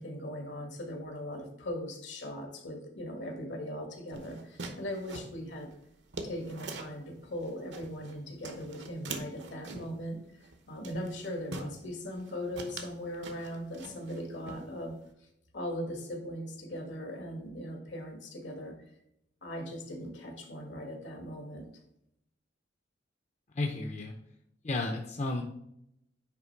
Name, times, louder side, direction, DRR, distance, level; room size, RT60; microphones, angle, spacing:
voice 1, 0.0-5.7 6.2-14.9 15.5-18.7 19.4-21.7, equal, 75° left, 3 dB, 1.6 m, -39 dB
sound 1, 4.1-7.0 7.4-8.2 8.4-10.0 10.4-10.6 10.8-11.8 12.2-12.3 12.6-14.2 14.5-15.1, right 3 dB, 70° right, 0.9 m, -43 dB
voice 2, 23.5-24.2 24.6-25.4, left 2 dB, 35° left, 3 dB, 0.6 m, -32 dB
9.6 x 3.2 x 4.5 m, 0.77 s
head